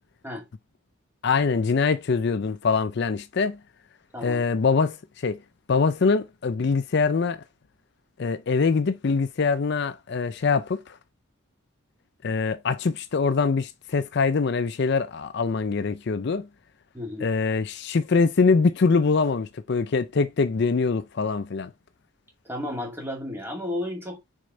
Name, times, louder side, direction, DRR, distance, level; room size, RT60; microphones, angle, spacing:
voice 1, 1.2-3.6 4.2-5.0 5.2-5.4 5.7-7.4 8.2-11.0 12.2-16.5 17.2-21.7, left 4 dB, 55° left, 0.4 m, -23 dB
voice 2, 4.1-4.5 16.9-17.3 22.4-24.2, left 1 dB, 10° right, 2.2 m, -33 dB
6.5 x 4.4 x 3.8 m
head